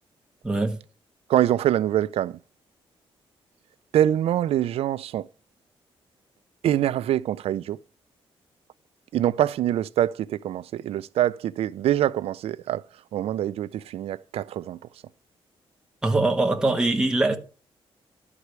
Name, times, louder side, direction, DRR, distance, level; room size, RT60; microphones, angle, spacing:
voice 1, 0.4-0.8 16.0-17.4, right 2 dB, 10° right, 1.3 m, -22 dB
voice 2, 1.3-2.4 3.9-5.3 6.6-7.8 9.1-12.8 13.1-14.8, right 12 dB, 85° right, 0.5 m, -24 dB
12.0 x 4.9 x 8.1 m
wide cardioid pair, 180°, 10 cm